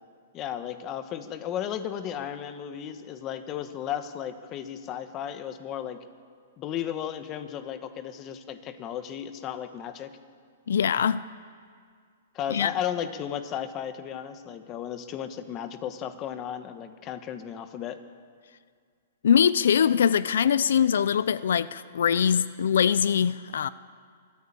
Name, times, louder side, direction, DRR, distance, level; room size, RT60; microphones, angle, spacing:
voice 1, 0.3-6.0 6.6-10.1 12.3-18.0, left 9 dB, 25° left, 10 dB, 1.2 m, -34 dB
voice 2, 10.7-11.2 12.5-12.7 19.2-23.7, left 8 dB, 75° left, 17 dB, 0.5 m, -22 dB
23.5 x 14.0 x 8.7 m, 2.1 s
hypercardioid pair, 160°, 0 cm